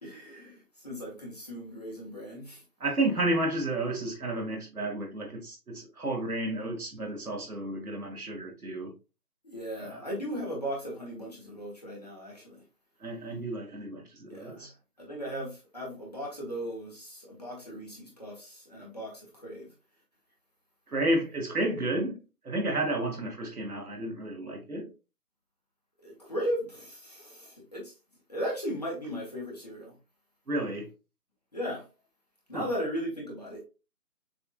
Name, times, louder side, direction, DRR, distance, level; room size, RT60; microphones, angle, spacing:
voice 1, 0.0-2.6 9.4-12.6 14.3-14.7 15.0-19.7 26.0-27.9 28.3-29.9 31.5-31.8 32.5-33.6, equal, 25° left, 1.2 m, -37 dB
voice 2, 2.8-8.9 9.8-10.0 13.0-14.7 20.9-24.9 30.5-30.9 32.5-32.7, right 1 dB, 70° right, 1.5 m, -31 dB
6.7 x 2.6 x 2.3 m
figure-of-eight pair, 170°, 46 cm